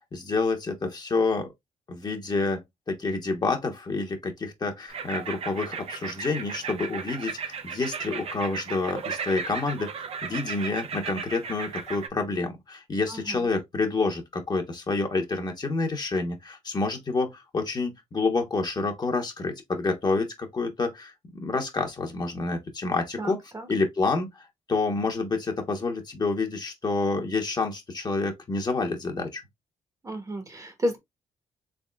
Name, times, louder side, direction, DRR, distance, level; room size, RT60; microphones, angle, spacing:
voice 1, 0.1-1.5 1.9-2.6 2.9-9.9 10.2-23.4 23.7-29.4, left 3 dB, 35° left, 1.1 m, -28 dB
sound 1, 4.9-12.1, right 6 dB, 50° right, 0.7 m, -35 dB
voice 2, 13.1-13.4 23.2-23.7 30.0-31.0, equal, 25° right, 1.1 m, -32 dB
3.6 x 3.5 x 2.3 m
cardioid pair, 95°, 13 cm